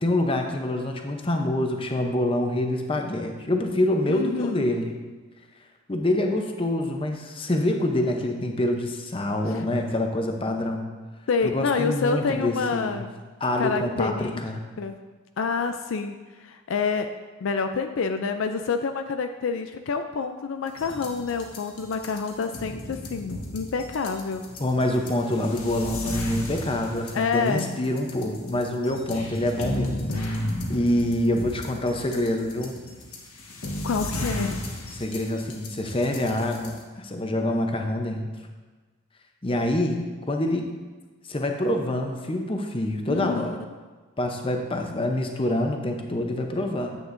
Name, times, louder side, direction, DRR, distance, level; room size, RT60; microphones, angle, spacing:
voice 1, 0.0-5.0 5.9-10.9 11.4-13.0 13.4-14.6 24.6-30.1 30.7-32.7 34.9-38.3 39.4-40.7 41.3-43.6 44.2-47.0, left 1 dB, 25° left, 3 dB, 0.7 m, -26 dB
voice 2, 4.1-4.7 11.3-13.1 13.6-14.4 14.8-15.0 15.4-17.1 17.4-24.4 27.1-27.7 33.8-34.7 43.1-43.5, left 5 dB, 65° left, 7 dB, 0.4 m, -27 dB
sound 1, 20.7-36.8, left 1 dB, 90° left, 1.3 m, -34 dB
9.6 x 8.2 x 2.6 m, 1.3 s
head